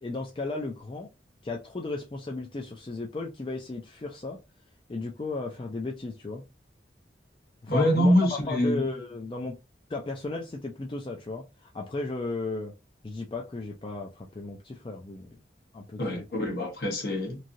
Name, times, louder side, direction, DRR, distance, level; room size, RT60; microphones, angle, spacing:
voice 1, 0.0-1.1 1.4-4.4 4.9-6.4 7.6-9.5 9.9-12.7 13.0-15.4 15.7-16.3, left 3 dB, 30° left, 0.4 m, -35 dB
voice 2, 7.7-8.8 16.0-17.4, equal, 55° left, 1.1 m, -24 dB
3.1 x 2.7 x 2.6 m
head